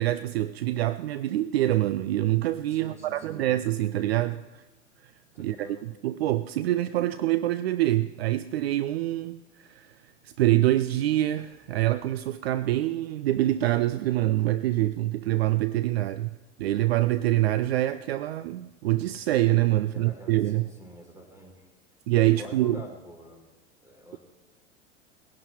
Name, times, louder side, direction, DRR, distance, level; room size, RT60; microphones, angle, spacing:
voice 1, 0.0-4.6 5.4-9.4 9.7-9.9 10.2-16.3 16.6-20.7 22.1-22.8, right 15 dB, 55° right, 14 dB, 0.6 m, -25 dB
voice 2, 2.7-3.5 5.3-5.9 19.9-21.7 22.3-23.4 23.8-24.2, left 1 dB, 10° right, 1 dB, 4.2 m, -46 dB
19.5 x 11.0 x 4.4 m, 1.1 s
figure-of-eight pair, 95°, 37 cm